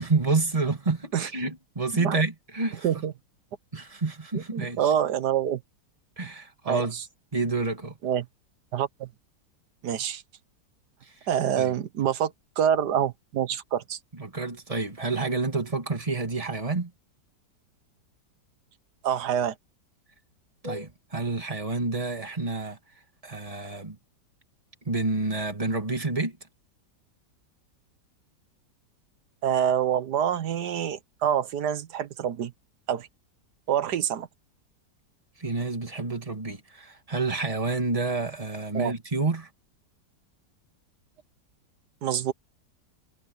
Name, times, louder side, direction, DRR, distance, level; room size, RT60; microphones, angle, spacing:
voice 1, 0.0-2.9 3.7-4.8 6.2-7.0 7.3-8.0 11.6-11.7 14.2-16.9 20.6-22.8 23.2-24.0 24.8-26.4 35.4-39.5, right 3 dB, 20° right, 2.5 m, -29 dB
voice 2, 4.3-5.6 6.7-7.0 8.0-8.3 8.7-9.1 9.8-10.2 11.3-14.0 19.0-19.5 29.4-32.5 32.9-33.1 33.7-34.3 38.7-38.9 42.0-42.3, right 9 dB, 70° right, 1.5 m, -26 dB
omnidirectional pair, 1.9 m